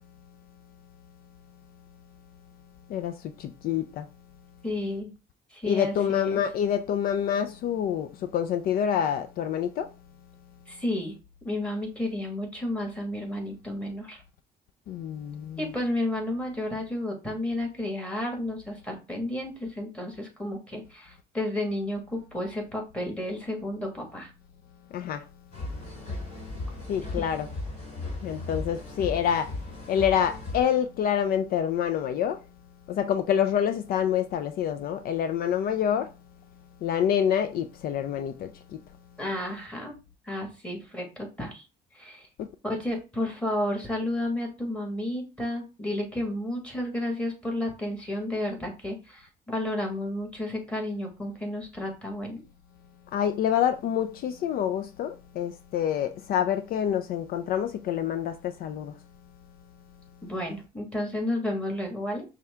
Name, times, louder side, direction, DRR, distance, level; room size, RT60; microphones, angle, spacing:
voice 1, 2.9-4.0 5.6-9.9 14.9-15.7 24.9-25.2 26.9-27.5 28.2-29.5 29.9-32.4 32.9-36.1 36.8-38.8 42.4-42.5 53.1-58.9, left 9 dB, 60° left, 0.4 m, -27 dB
voice 2, 4.6-5.1 5.5-6.4 10.7-11.2 11.4-14.2 15.6-24.3 27.2-27.3 39.2-39.9 40.3-41.6 41.9-42.3 42.6-52.4 60.2-62.2, left 1 dB, 5° left, 1.7 m, -32 dB
sound 1, 25.5-30.6, left 2 dB, 40° left, 2.3 m, -36 dB
5.7 x 2.2 x 3.5 m
cardioid pair, 110°, 17 cm